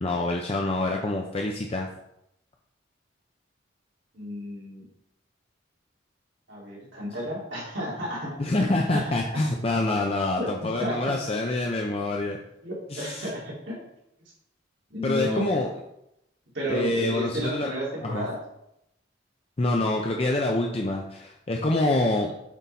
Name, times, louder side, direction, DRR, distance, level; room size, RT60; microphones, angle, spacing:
voice 1, 0.0-1.9 8.4-12.4 12.9-13.3 15.0-15.7 16.7-17.7 18.0-18.3 19.6-22.3, left 2 dB, 30° left, 1 dB, 0.5 m, -26 dB
voice 2, 4.1-4.8 6.5-9.4 10.4-10.5 10.8-11.1 12.6-13.8 14.9-15.5 16.5-18.4, equal, 75° right, -5 dB, 2.6 m, -32 dB
8.3 x 3.9 x 4.1 m, 0.81 s
head